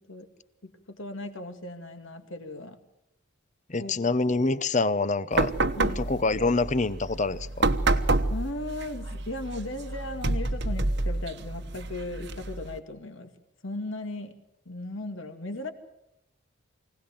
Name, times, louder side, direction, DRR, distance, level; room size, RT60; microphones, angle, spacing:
voice 1, 0.6-2.8 3.8-4.0 5.8-6.0 8.3-13.3 13.6-14.3 14.7-15.7, left 2 dB, 65° left, 2.2 m, -37 dB
voice 2, 3.7-5.5 5.8-7.5, left 3 dB, 35° left, 0.8 m, -26 dB
sound 1, 5.3-12.8, right 2 dB, 55° right, 1.1 m, -29 dB
24.0 x 17.5 x 7.7 m
head